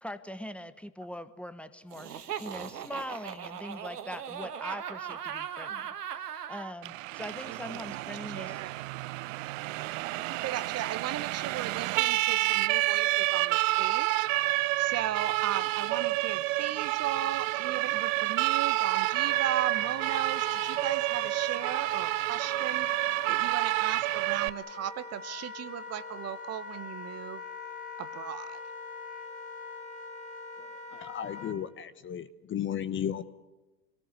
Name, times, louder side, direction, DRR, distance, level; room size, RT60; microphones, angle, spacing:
voice 1, 0.0-8.6, equal, 5° left, 12 dB, 1.1 m, -42 dB
Laughter, 1.9-6.7, right 9 dB, 80° right, 1.4 m, -39 dB
Siren, 6.8-24.5, right 19 dB, 55° right, 0.7 m, -29 dB
voice 2, 7.5-8.0 8.3-8.7 9.7-14.3 14.8-22.9 23.3-27.4 28.0-28.6, right 11 dB, 35° right, 13 dB, 1.1 m, -37 dB
Wind instrument woodwind instrument, 18.8-31.6, left 5 dB, 65° left, 4.5 m, -43 dB
voice 3, 30.6-33.2, left 9 dB, 25° left, 13 dB, 1.0 m, -35 dB
26.0 x 18.0 x 8.3 m, 1.1 s
hypercardioid pair, 90°, 46 cm